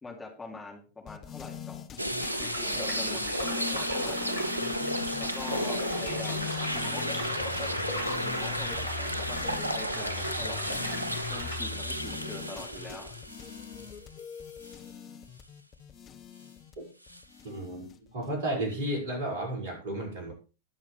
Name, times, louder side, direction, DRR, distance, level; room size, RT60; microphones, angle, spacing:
voice 1, 0.0-1.8 2.4-3.2 3.5-4.3 5.2-7.8 8.2-10.8 11.3-13.2, left 3 dB, 10° left, 0 dB, 3.1 m, -44 dB
sound 1, 1.1-18.3, left 8 dB, 30° left, 1.3 m, -42 dB
sound 2, 2.0-14.2 14.6-14.7 17.1-17.2, equal, 85° right, 0.6 m, -33 dB
sound 3, 2.2-11.6, equal, 75° left, 7.5 m, -39 dB
voice 2, 17.4-20.3, right 1 dB, 50° right, 1 dB, 6.1 m, -33 dB
21.0 x 7.1 x 3.4 m, 0.33 s
figure-of-eight pair, 90°, 0 cm